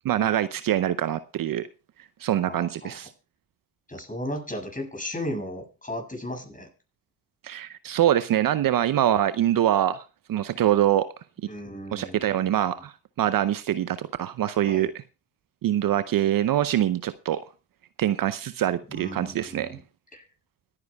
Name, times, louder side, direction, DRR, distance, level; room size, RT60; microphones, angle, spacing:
voice 1, 0.0-1.7 2.2-3.1 7.4-10.0 10.3-11.1 11.9-14.9 15.6-17.4 18.0-19.8, right 11 dB, 50° right, 0.7 m, -24 dB
voice 2, 2.4-3.0 3.9-6.7 11.5-12.4 14.7-14.9 18.9-19.8 20.1-20.3, left 1 dB, 20° left, 7.3 m, -35 dB
24.5 x 9.6 x 2.3 m
hypercardioid pair, 45°, 42 cm